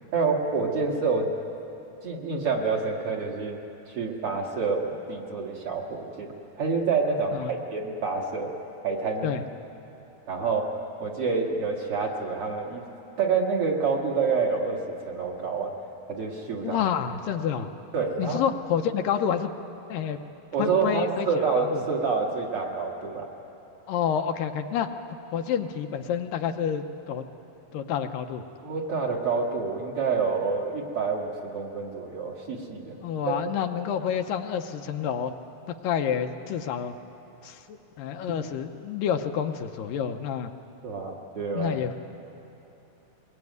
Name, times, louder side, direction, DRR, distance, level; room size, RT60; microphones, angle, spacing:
voice 1, 0.1-1.3 2.0-3.6 3.9-6.3 6.6-8.5 8.8-9.3 10.3-10.7 11.0-12.8 13.2-15.7 16.1-16.8 17.9-18.4 20.5-23.3 28.6-33.0 33.3-33.4 40.8-41.8, right 4 dB, 45° right, -1 dB, 2.4 m, -27 dB
voice 2, 16.6-17.7 18.2-19.5 19.9-20.2 20.6-21.3 21.6-21.8 23.9-24.9 25.3-27.3 27.7-28.5 33.0-35.3 35.8-36.9 37.4-40.5 41.6-42.0, left 8 dB, 75° left, 6 dB, 2.4 m, -28 dB
23.0 x 21.5 x 9.5 m, 2.9 s
omnidirectional pair, 4.2 m